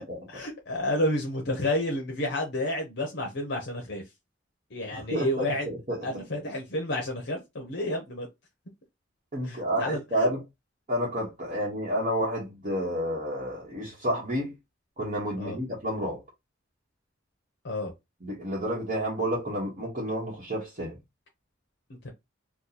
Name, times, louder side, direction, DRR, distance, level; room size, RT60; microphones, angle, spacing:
voice 1, 0.3-4.0 4.7-5.7 6.0-8.3 9.4-10.3 15.4-15.6 17.6-17.9 22.0-22.1, left 1 dB, 60° left, 0.8 m, -30 dB
voice 2, 4.9-6.2 9.3-10.4 10.9-14.5 15.0-16.2 18.2-21.0, equal, 40° right, 1.2 m, -30 dB
2.9 x 2.4 x 3.9 m
head